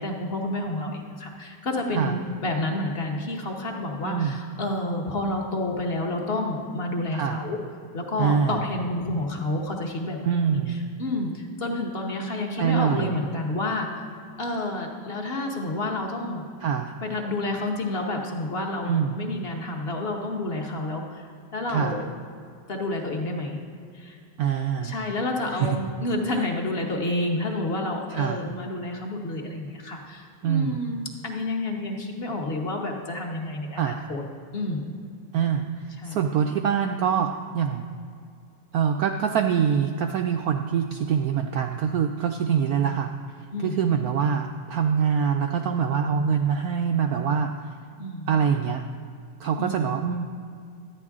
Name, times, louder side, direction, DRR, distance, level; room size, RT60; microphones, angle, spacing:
voice 1, 0.0-7.6 7.9-10.2 10.5-10.6 11.0-14.1 14.4-16.5 17.0-21.2 21.5-22.1 22.7-23.6 23.9-24.2 24.8-34.2 34.5-34.9 36.0-36.2 43.5-43.8 48.0-48.3 49.6-49.9, left 2 dB, 35° left, 1 dB, 1.2 m, -29 dB
voice 2, 4.0-4.4 7.1-7.4 8.2-8.6 10.2-10.8 12.6-13.2 16.6-16.9 18.8-19.2 21.7-22.0 24.4-25.0 25.5-25.8 28.1-28.4 30.4-30.8 33.8-34.0 35.3-37.9 38.7-43.1 43.6-47.5 48.3-48.8 49.4-50.2, right 7 dB, 80° right, 5 dB, 0.8 m, -24 dB
13.5 x 9.8 x 3.6 m, 2.3 s
omnidirectional pair, 2.1 m